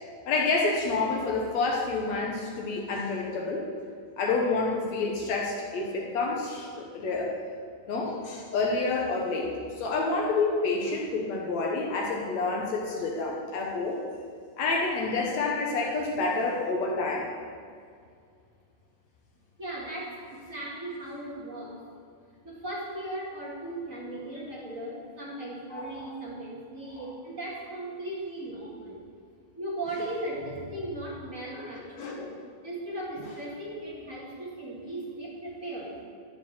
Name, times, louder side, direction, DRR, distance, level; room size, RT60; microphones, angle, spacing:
voice 1, 0.3-3.7 4.2-7.3 7.9-14.0 14.6-17.3 25.7-26.1 27.0-27.1 31.5-32.3, left 3 dB, 65° left, -1 dB, 1.9 m, -28 dB
voice 2, 19.6-21.8 22.4-29.0 29.6-32.2 32.6-36.0, right 1 dB, 35° right, -5 dB, 1.4 m, -37 dB
11.5 x 4.9 x 7.2 m, 2.2 s
omnidirectional pair, 3.9 m